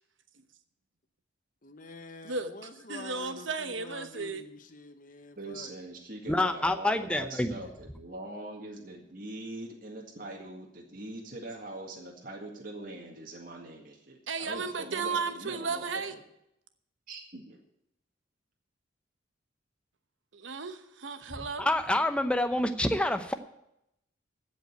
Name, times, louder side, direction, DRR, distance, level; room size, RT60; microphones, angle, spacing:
voice 1, 1.6-5.7, left 3 dB, 40° left, 7 dB, 1.0 m, -47 dB
voice 2, 2.2-4.4 14.3-16.1 20.3-21.7, right 4 dB, 80° right, 9 dB, 1.0 m, -34 dB
voice 3, 5.4-16.2 17.1-17.6, right 2 dB, 45° right, 0 dB, 1.9 m, -42 dB
voice 4, 6.3-7.5 21.6-23.3, left 1 dB, 5° left, 8 dB, 0.8 m, -27 dB
15.0 x 5.3 x 9.2 m, 0.80 s
head